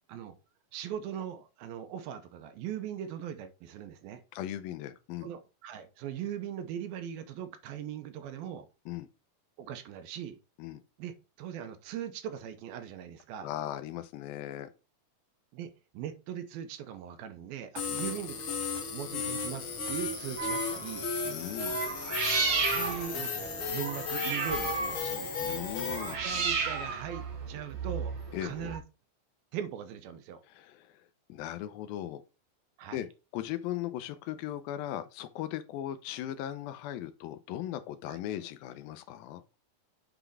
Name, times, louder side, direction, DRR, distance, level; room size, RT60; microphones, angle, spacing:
voice 1, 0.7-4.2 5.2-8.7 9.6-10.4 11.0-13.5 15.5-18.4 18.6-21.1 22.7-25.3 26.2-28.8 29.5-30.4 32.8-33.0 38.1-38.2, right 10 dB, 80° right, 2.7 m, -40 dB
voice 2, 4.3-5.3 8.9-9.1 10.6-10.8 13.4-14.7 17.9-18.1 21.2-21.8 25.4-26.2 28.3-28.7 30.5-30.9 31.3-32.2 32.9-33.1 33.3-39.4, left 12 dB, 85° left, 2.5 m, -38 dB
sound 1, 17.8-26.1, left 5 dB, 60° left, 1.4 m, -35 dB
sound 2, 20.4-20.9 21.7-28.8, right 5 dB, 50° right, 2.3 m, -33 dB
8.0 x 3.9 x 4.7 m
omnidirectional pair, 4.2 m